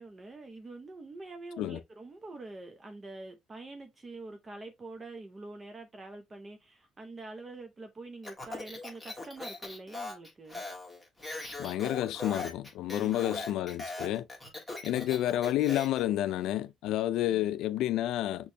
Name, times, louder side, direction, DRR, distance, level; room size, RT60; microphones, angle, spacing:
voice 1, 0.0-10.6 12.9-13.6 17.1-17.6, right 2 dB, 25° right, 0.7 m, -46 dB
Speech, 8.2-16.0, left 2 dB, 5° left, 1.5 m, -40 dB
voice 2, 11.6-14.3 14.8-18.5, left 13 dB, 80° left, 0.4 m, -30 dB
6.3 x 3.0 x 2.7 m
cardioid pair, 140°, 0 cm